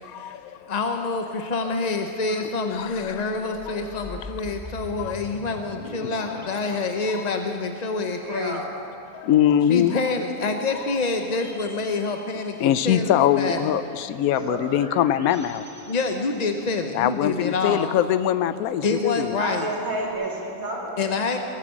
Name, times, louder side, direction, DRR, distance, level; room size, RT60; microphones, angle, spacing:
voice 1, 0.0-0.6 2.7-3.1 5.0-5.1 9.1-10.0 12.6-15.6 16.9-19.4, left 10 dB, 75° left, 13 dB, 1.0 m, -22 dB
voice 2, 0.7-8.6 9.7-13.7 15.9-17.9 18.8-19.7 21.0-21.4, left 3 dB, 45° left, 5 dB, 0.5 m, -27 dB
sound 1, 2.8-7.8 11.2-13.0 14.4-17.0 19.7-20.1, left 2 dB, 25° left, 2.1 m, -43 dB
voice 3, 8.1-8.7 14.2-14.6 19.4-21.4, right 2 dB, 65° right, -3 dB, 3.1 m, -31 dB
20.5 x 9.0 x 7.3 m, 2.9 s
omnidirectional pair, 1.6 m